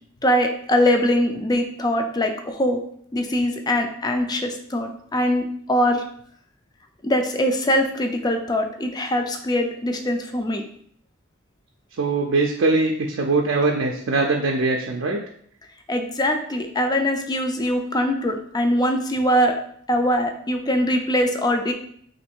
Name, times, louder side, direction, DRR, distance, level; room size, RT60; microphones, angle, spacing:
voice 1, 0.2-2.8 3.1-6.0 7.0-10.6 15.9-19.6 19.9-21.7, equal, 20° left, 5 dB, 0.4 m, -22 dB
voice 2, 12.0-15.2, right 3 dB, 65° right, 1 dB, 0.4 m, -21 dB
3.1 x 2.6 x 4.4 m, 0.63 s
head